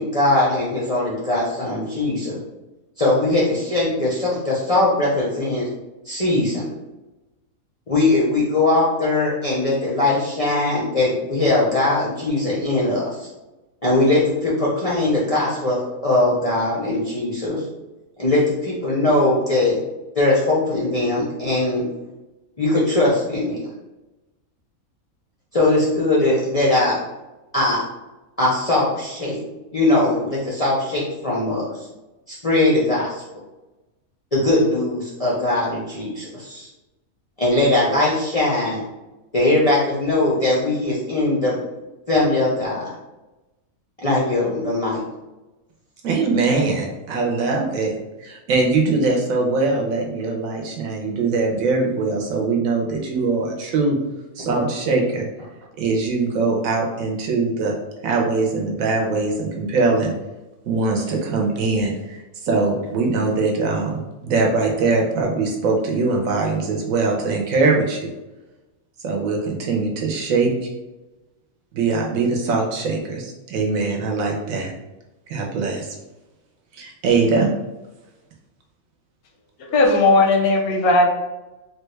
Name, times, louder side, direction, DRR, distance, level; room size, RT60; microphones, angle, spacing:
voice 1, 0.0-2.4 3.0-5.7 6.1-6.7 7.9-13.3 13.8-17.6 18.2-19.8 20.1-21.8 22.6-23.6 25.5-27.0 27.5-27.8 28.4-29.4 29.7-31.9 32.3-33.2 34.3-36.7 37.4-38.8 39.3-41.6 42.1-42.9 44.0-45.0, left 2 dB, 50° left, -7 dB, 0.4 m, -20 dB
voice 2, 46.0-54.0 54.4-55.3 55.8-57.7 58.0-60.1 60.7-68.1 69.0-70.7 71.7-74.7 75.3-75.9 76.7-77.5, right 3 dB, 75° right, 0 dB, 1.1 m, -22 dB
voice 3, 79.6-81.1, left 2 dB, 85° left, 3 dB, 1.1 m, -16 dB
3.4 x 2.2 x 3.1 m, 1.0 s
omnidirectional pair, 1.5 m